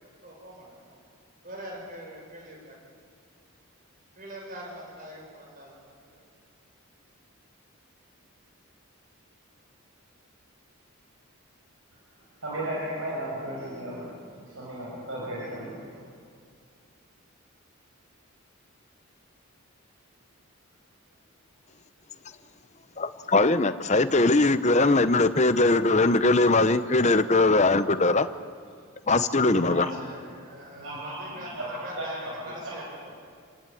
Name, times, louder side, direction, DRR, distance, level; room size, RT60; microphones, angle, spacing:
voice 1, 0.2-1.0 1.4-2.7 4.2-5.8 6.1-6.2 29.9-33.0, equal, 40° right, -1 dB, 7.4 m, -43 dB
voice 2, 12.4-15.8 29.3-29.9 30.8-32.1 32.6-32.7, right 1 dB, 70° right, -6 dB, 6.7 m, -35 dB
voice 3, 23.0-28.3 29.1-29.9, left 2 dB, 30° left, 11 dB, 0.9 m, -21 dB
29.0 x 19.5 x 9.3 m, 2.2 s
head